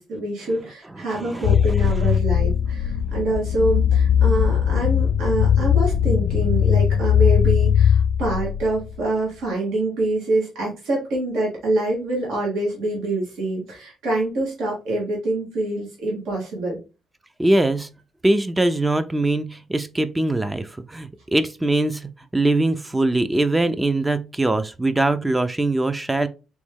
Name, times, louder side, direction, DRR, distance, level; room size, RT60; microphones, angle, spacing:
voice 1, 0.0-16.8, right 2 dB, 85° right, 1.5 m, -25 dB
sound 1, 1.4-9.0, left 8 dB, 85° left, 0.4 m, -19 dB
voice 2, 17.4-17.9 18.2-26.3, right 2 dB, 15° right, 0.4 m, -22 dB
3.5 x 3.1 x 3.5 m
cardioid pair, 90°, 0 cm